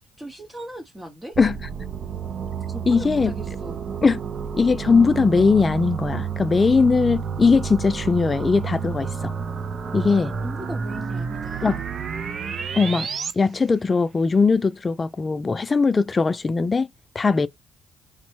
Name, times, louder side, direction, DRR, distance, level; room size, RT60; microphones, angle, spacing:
voice 1, 0.0-1.4 2.7-3.8 10.4-11.8, right 1 dB, 15° right, 0.7 m, -38 dB
sound 1, 1.3-13.3, right 6 dB, 50° right, 0.4 m, -30 dB
voice 2, 2.9-3.3 4.0-4.2 4.5-9.3 9.9-10.3 11.6-11.8 12.7-13.1 13.4-16.9 17.2-17.5, left 4 dB, 30° left, 0.3 m, -20 dB
3.1 x 2.1 x 3.0 m
cardioid pair, 90°, 0 cm